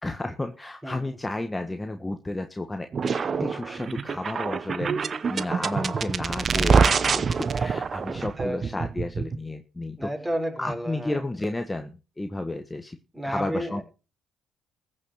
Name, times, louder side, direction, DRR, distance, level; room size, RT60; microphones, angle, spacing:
voice 1, 0.0-2.9 3.2-10.1 10.6-13.0 13.2-13.8, left 2 dB, 15° left, 1.4 m, -32 dB
voice 2, 0.8-1.2 6.5-7.3 8.0-8.9 10.0-11.2 13.1-13.8, right 1 dB, 15° right, 5.3 m, -33 dB
sound 1, 2.9-9.4, right 5 dB, 45° right, 0.9 m, -25 dB
15.0 x 6.7 x 6.5 m
supercardioid pair, 65°, 0 cm